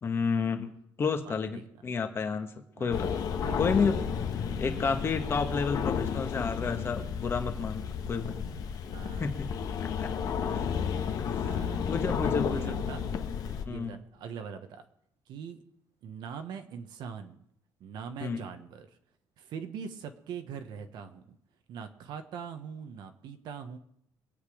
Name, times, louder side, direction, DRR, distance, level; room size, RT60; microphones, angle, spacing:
voice 1, 0.0-0.7 1.0-2.5 2.8-3.1 3.6-4.0 4.6-8.6 9.2-9.3 9.8-10.1 10.5-10.7 11.2-11.5 11.9-12.6 13.6-13.9 18.2-18.4, left 5 dB, 30° left, 5 dB, 1.4 m, -30 dB
voice 2, 1.3-1.6 2.8-3.0 3.4-3.7 8.9-9.3 11.4-13.0 13.6-14.8 15.3-15.6 16.0-17.4 17.8-19.0 19.4-21.4 21.7-23.8, right 6 dB, 70° right, 7 dB, 1.3 m, -42 dB
sound 1, 2.9-13.6, left 7 dB, 55° left, 1.3 m, -32 dB
23.5 x 8.3 x 5.0 m, 0.74 s
cardioid pair, 155°, 8 cm